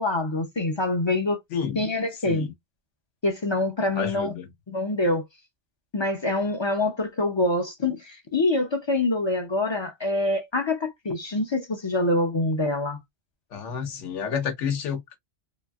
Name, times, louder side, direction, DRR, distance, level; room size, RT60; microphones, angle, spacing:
voice 1, 0.0-1.4 1.8-2.5 3.2-4.3 4.7-5.2 5.9-13.0, left 2 dB, 40° left, 0.4 m, -25 dB
voice 2, 1.5-1.8 2.2-2.5 3.9-4.5 13.5-15.2, left 7 dB, 80° left, 1.2 m, -30 dB
3.0 x 2.5 x 2.3 m
omnidirectional pair, 1.2 m